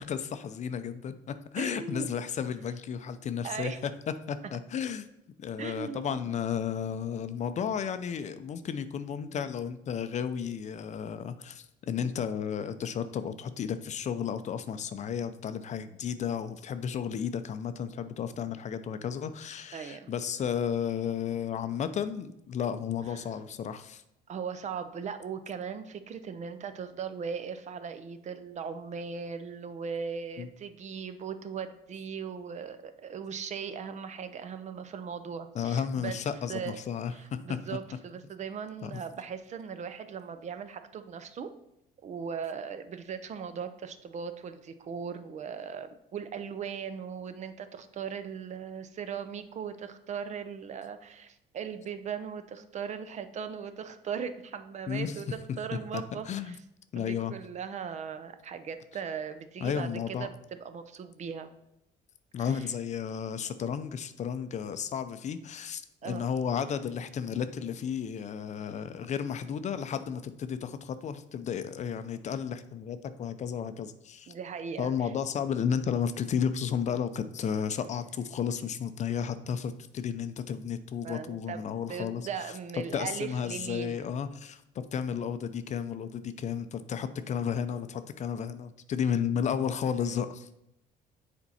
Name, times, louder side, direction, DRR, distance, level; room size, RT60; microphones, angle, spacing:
voice 1, 0.0-3.7 4.3-5.0 5.4-24.0 30.4-30.5 35.5-37.6 38.8-38.9 54.9-55.1 55.9-56.6 56.9-57.3 59.6-60.3 62.3-74.3 74.8-82.3 82.9-90.5, left 7 dB, 45° left, 11 dB, 0.5 m, -33 dB
voice 2, 1.6-2.1 3.4-3.8 5.6-6.3 12.0-12.1 19.7-20.1 23.1-23.3 24.3-36.2 36.5-36.8 37.1-41.5 42.0-55.3 55.6-56.6 56.9-61.5 62.4-62.7 66.0-66.3 74.3-75.1 81.0-81.6 81.9-84.0, right 6 dB, 45° right, 10 dB, 0.6 m, -38 dB
7.1 x 4.4 x 4.1 m, 0.82 s
cardioid pair, 110°, 17 cm